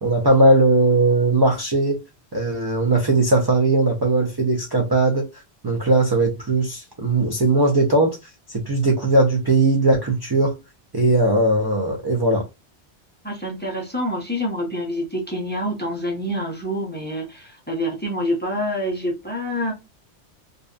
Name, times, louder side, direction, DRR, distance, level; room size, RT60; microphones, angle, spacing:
voice 1, 0.0-2.0 2.3-5.3 5.6-8.2 8.5-10.6 10.9-12.4, right 2 dB, 35° right, 0.4 m, -19 dB
voice 2, 13.2-19.7, equal, 10° left, 0.5 m, -27 dB
2.7 x 2.2 x 2.3 m
omnidirectional pair, 1.1 m